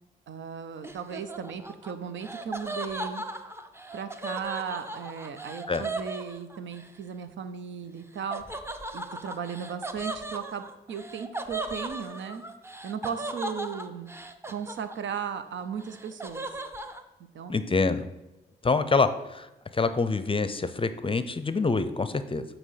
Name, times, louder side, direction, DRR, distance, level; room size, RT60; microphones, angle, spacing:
voice 1, 0.3-3.2 3.9-8.4 8.9-12.4 12.8-14.1 14.5-16.5 17.3-17.6, right 7 dB, 70° right, 10 dB, 0.6 m, -36 dB
Laughter, 0.8-6.9 8.3-15.3 15.6-17.0, right 2 dB, 10° right, 0.7 m, -37 dB
voice 2, 17.5-18.1 18.6-19.5 19.7-22.5, left 4 dB, 25° left, 11 dB, 0.6 m, -26 dB
8.1 x 3.0 x 5.7 m, 1.0 s
supercardioid pair, 55°, 20 cm